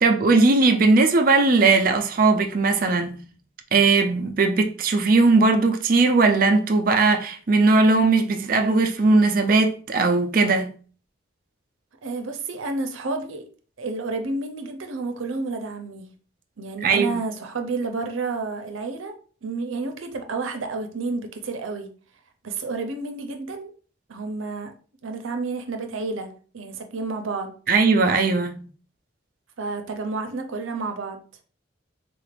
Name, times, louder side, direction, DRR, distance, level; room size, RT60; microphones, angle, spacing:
voice 1, 0.0-3.2 3.7-10.8 16.8-17.2 27.7-28.6, right 3 dB, 45° right, 0.4 m, -19 dB
voice 2, 12.0-13.4 13.8-16.1 16.6-19.1 19.4-21.9 22.4-23.7 24.1-24.7 25.0-27.5 29.6-31.2, right 3 dB, 85° right, 0.6 m, -30 dB
3.8 x 2.5 x 3.2 m
head